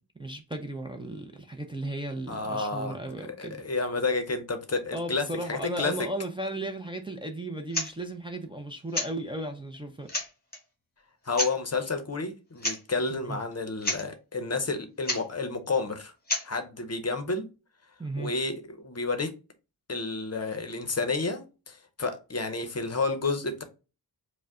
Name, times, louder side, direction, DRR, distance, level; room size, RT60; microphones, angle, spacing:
voice 1, 0.2-3.6 4.9-10.1 13.1-13.4 18.0-18.3, right 1 dB, 15° right, 0.5 m, -35 dB
voice 2, 2.3-3.0 3.4-5.9 11.3-16.1 16.4-17.5 18.2-19.3 19.9-23.6, left 3 dB, 40° left, 0.7 m, -30 dB
sound 1, 7.7-7.9 8.9-9.1 9.7-9.8 10.1-10.6 11.3-11.6 12.6-12.8 13.1-13.2 13.5-13.6 13.8-14.1 15.0-15.2 16.3-16.5, left 2 dB, 20° left, 1.2 m, -30 dB
4.9 x 2.1 x 3.6 m
wide cardioid pair, 120°, 41 cm